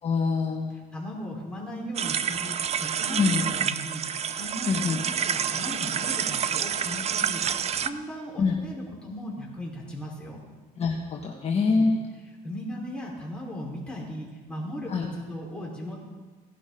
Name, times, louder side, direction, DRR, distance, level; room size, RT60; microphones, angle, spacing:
voice 1, 0.0-0.7 3.2-3.5 4.6-5.0 8.4-8.5 10.8-12.0 14.9-15.1, left 4 dB, 40° left, -2 dB, 1.6 m, -25 dB
voice 2, 0.9-10.4 11.6-11.9 12.4-16.0, equal, 5° left, -4 dB, 4.3 m, -37 dB
sound 1, 1.9-7.9, right 8 dB, 40° right, 0.5 m, -28 dB
17.0 x 11.5 x 3.8 m, 1.4 s
cardioid pair, 110°, 17 cm